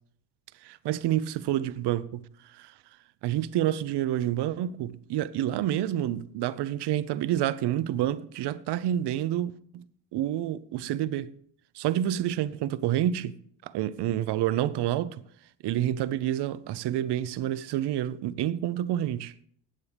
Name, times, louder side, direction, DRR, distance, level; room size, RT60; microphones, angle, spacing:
voice 1, 0.6-2.2 2.5-2.7 3.2-9.8 10.1-11.3 11.7-15.2 15.6-19.3, right 12 dB, 60° right, 0.7 m, -28 dB
15.5 x 9.6 x 3.4 m
cardioid pair, 140°, 46 cm